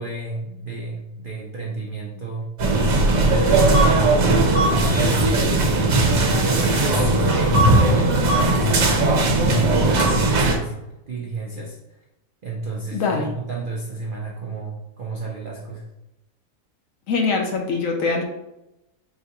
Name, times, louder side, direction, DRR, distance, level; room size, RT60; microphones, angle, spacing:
voice 1, 0.0-2.5 3.1-5.1 5.8-8.7 9.2-10.7 11.1-11.8 12.4-15.9, right 3 dB, 85° right, -2 dB, 0.4 m, -31 dB
sound 1, 2.6-10.6, right 2 dB, 60° right, 1.3 m, -18 dB
voice 2, 12.9-13.3 17.1-18.2, left 4 dB, 65° left, 3 dB, 0.9 m, -23 dB
4.7 x 3.3 x 2.9 m, 0.93 s
omnidirectional pair, 1.7 m